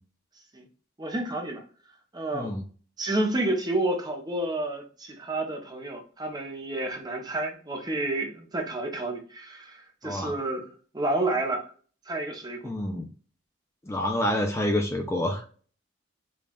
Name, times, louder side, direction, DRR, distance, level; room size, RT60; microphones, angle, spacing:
voice 1, 1.0-1.6 2.1-2.5 3.0-10.7 10.9-11.6 12.1-12.7, right 2 dB, 20° right, 3 dB, 0.7 m, -30 dB
voice 2, 10.0-10.3 12.6-13.1 13.8-15.4, left 1 dB, 15° left, 3 dB, 0.4 m, -28 dB
5.3 x 2.3 x 2.3 m, 0.41 s
head